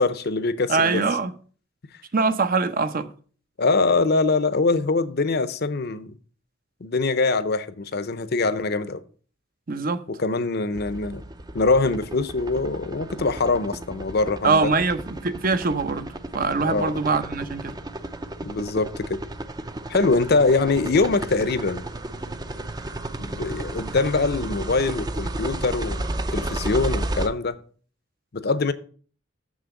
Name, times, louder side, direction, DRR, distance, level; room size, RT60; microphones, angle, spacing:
voice 1, 0.0-1.0 3.6-6.1 6.8-9.0 10.1-11.2 11.5-14.7 16.6-16.9 18.4-19.2 19.9-21.9 23.2-26.1 26.3-27.6 28.3-28.7, left 3 dB, 55° left, 0.7 m, -23 dB
voice 2, 0.7-1.3 2.1-3.1 9.7-10.0 14.4-16.1 16.3-17.7, right 4 dB, 45° right, 0.7 m, -23 dB
sound 1, 10.7-27.3, right 1 dB, 20° right, 0.6 m, -33 dB
7.2 x 6.4 x 7.1 m
head